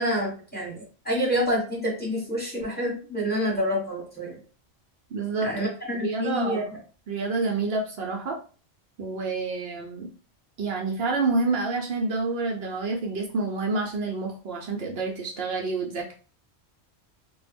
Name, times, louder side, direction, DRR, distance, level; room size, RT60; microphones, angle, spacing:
voice 1, 0.0-4.4 5.4-6.6, equal, 10° left, -5 dB, 1.0 m, -28 dB
voice 2, 5.1-5.5 5.9-6.7 7.1-8.4 9.0-10.1 10.6-16.1, right 3 dB, 70° right, 1 dB, 0.8 m, -28 dB
2.2 x 2.0 x 3.3 m, 0.38 s
omnidirectional pair, 1.1 m